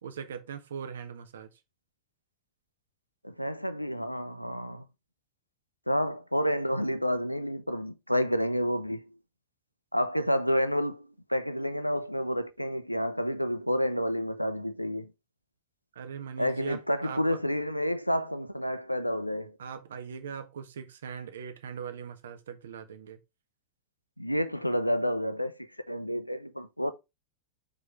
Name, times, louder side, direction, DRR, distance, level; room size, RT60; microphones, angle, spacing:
voice 1, 0.0-1.5 15.9-17.4 19.6-23.2, right 7 dB, 65° right, 1.1 m, -40 dB
voice 2, 3.2-4.9 5.9-9.1 9.9-15.1 16.4-19.6 24.2-26.9, equal, 90° left, 0.6 m, -29 dB
5.0 x 4.8 x 5.0 m
figure-of-eight pair, 90°, 0 cm